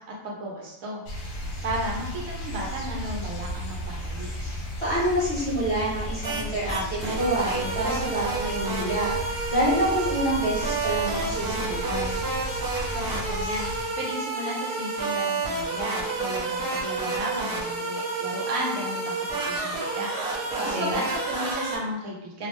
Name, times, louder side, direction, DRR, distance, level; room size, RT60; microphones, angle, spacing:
voice 1, 0.1-1.0 1.6-4.3 12.9-22.5, equal, 85° right, -2 dB, 1.2 m, -34 dB
sound 1, 1.1-13.8, equal, 65° left, 1.0 m, -34 dB
voice 2, 4.8-12.2 20.6-21.0, right 1 dB, 30° left, -8 dB, 0.7 m, -27 dB
sound 2, 6.2-6.4 6.7-21.8, right 3 dB, 55° right, 1.0 m, -30 dB
2.8 x 2.0 x 3.0 m, 0.84 s
omnidirectional pair, 1.4 m